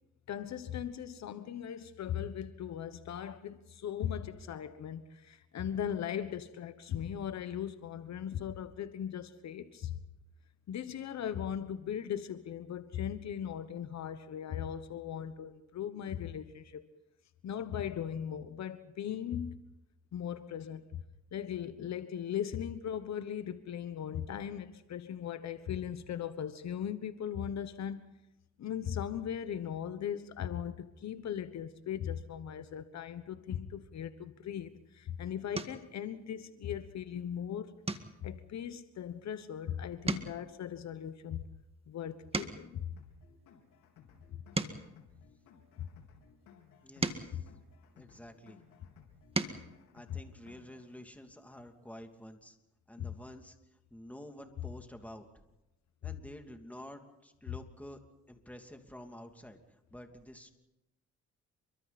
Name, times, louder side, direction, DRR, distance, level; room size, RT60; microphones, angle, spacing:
voice 1, 0.3-10.0 10.7-16.8 17.4-19.6 20.1-21.0 21.3-28.0 28.6-37.7 38.2-41.4 41.9-42.9 45.8-45.9 47.3-47.4 50.1-50.2 53.0-53.1, left 9 dB, 65° left, 11 dB, 1.2 m, -38 dB
sound 1, 34.7-34.9 35.5-35.9 36.4-36.8 37.1-37.3 37.8-39.6 39.9-42.9 43.5-45.9 46.6-48.5 49.0-49.7 51.1-51.2 51.5-51.7, right 3 dB, 20° right, 1.8 m, -40 dB
sound 2, 43.0-51.0, left 7 dB, 90° left, 4.2 m, -60 dB
voice 2, 46.8-47.5 47.9-48.6 49.9-52.6 52.9-53.5 53.9-55.3 56.0-58.0 58.3-59.6 59.9-60.5, left 1 dB, 5° left, 4 dB, 2.8 m, -49 dB
28.5 x 24.0 x 4.3 m, 0.93 s
cardioid pair, 90°, 30 cm